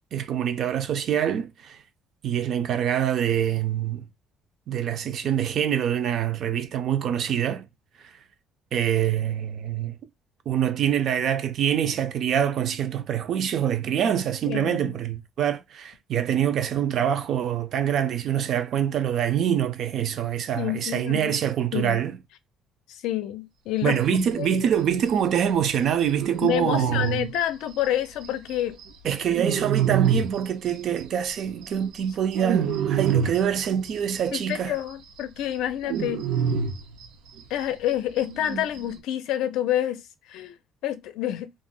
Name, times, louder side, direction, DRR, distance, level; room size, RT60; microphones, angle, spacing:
voice 1, 0.1-1.8 2.2-4.1 4.7-7.7 8.0-8.1 8.7-10.0 10.5-22.2 23.8-27.3 29.0-34.8, right 9 dB, 45° right, 0.4 m, -25 dB
voice 2, 14.5-14.9 20.6-21.4 21.7-22.0 22.9-24.5 26.4-28.8 34.3-36.3 37.5-40.0 40.3-40.6 40.8-41.5, left 12 dB, 80° left, 0.5 m, -28 dB
sound 1, 24.1-24.7 25.1-25.2 25.4-25.5 25.7-25.8 26.0-28.5 28.8-31.0 31.3-34.2 34.5-34.6 34.9-37.6 37.9-38.0 38.2-39.0, right 8 dB, 90° right, 0.6 m, -27 dB
2.5 x 2.1 x 3.7 m
cardioid pair, 175°, 0 cm